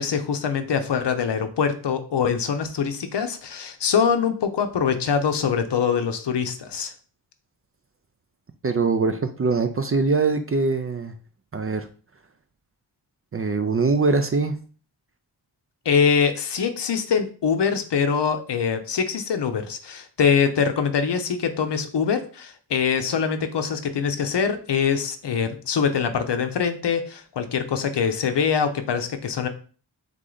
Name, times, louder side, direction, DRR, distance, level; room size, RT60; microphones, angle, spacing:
voice 1, 0.0-6.9 15.9-29.5, left 6 dB, 65° left, 8 dB, 0.7 m, -23 dB
voice 2, 8.6-11.1 11.5-11.9 13.3-14.6, right 4 dB, 35° right, 8 dB, 0.4 m, -22 dB
3.7 x 3.2 x 3.8 m, 0.39 s
wide cardioid pair, 110°, 44 cm